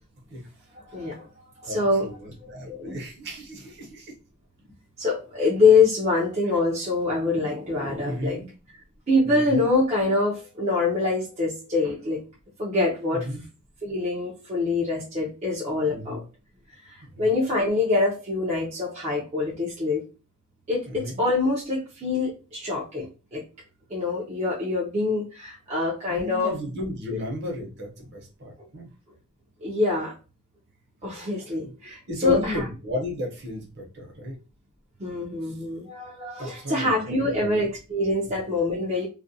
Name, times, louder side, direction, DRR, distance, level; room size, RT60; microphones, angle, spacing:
voice 1, 0.9-1.3 1.6-2.1 2.7-3.0 5.0-8.4 9.1-12.2 12.6-13.3 13.8-16.2 16.8-20.0 20.7-23.5 23.9-26.6 27.1-27.2 29.6-30.1 31.0-32.7 35.0-39.1, left 3 dB, 30° right, -5 dB, 0.5 m, -25 dB
voice 2, 1.7-4.1 8.0-8.5 9.2-9.6 13.1-13.5 15.9-16.2 17.1-17.3 20.9-21.2 26.1-28.9 31.3-31.4 32.1-34.3 36.4-37.7 38.2-38.3, left 2 dB, 55° right, 0 dB, 0.9 m, -34 dB
2.4 x 2.1 x 2.6 m, 0.32 s
head